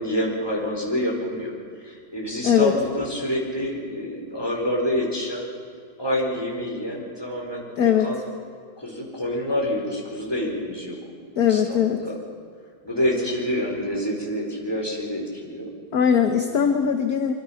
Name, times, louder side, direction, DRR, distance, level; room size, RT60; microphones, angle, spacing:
voice 1, 0.0-1.5 1.8-5.4 6.0-7.7 8.0-8.2 8.8-11.1 11.5-12.2 12.8-15.7, left 1 dB, 10° left, -1 dB, 4.3 m, -27 dB
voice 2, 7.8-8.1 11.4-12.1 15.9-17.3, left 8 dB, 55° left, 6 dB, 1.4 m, -20 dB
24.5 x 24.0 x 5.8 m, 2.1 s
omnidirectional pair, 2.1 m